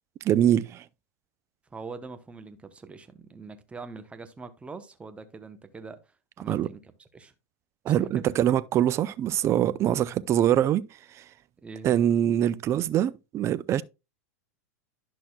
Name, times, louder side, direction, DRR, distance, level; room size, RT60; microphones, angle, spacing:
voice 1, 0.2-0.8 6.5-6.7 7.9-10.8 11.2-11.3 11.8-13.8, right 11 dB, 30° right, 0.4 m, -23 dB
voice 2, 1.7-6.0 6.4-7.3 7.9-8.3 11.6-12.1, right 4 dB, 15° right, 0.8 m, -43 dB
11.0 x 6.1 x 2.2 m
hypercardioid pair, 110°, 9 cm